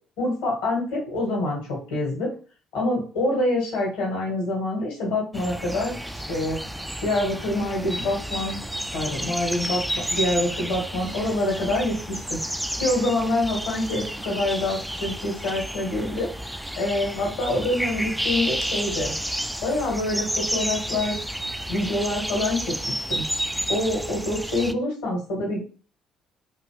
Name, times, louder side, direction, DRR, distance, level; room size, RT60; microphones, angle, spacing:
voice 1, 0.2-2.3 2.7-6.6 7.0-8.6 8.9-12.4 12.8-19.1 19.6-21.2 21.7-23.2 23.7-25.6, left 1 dB, 70° left, -2 dB, 1.4 m, -26 dB
sound 1, 5.3-24.7, equal, 5° right, 0.3 m, -31 dB
2.8 x 2.5 x 3.2 m, 0.37 s
figure-of-eight pair, 50°, 0 cm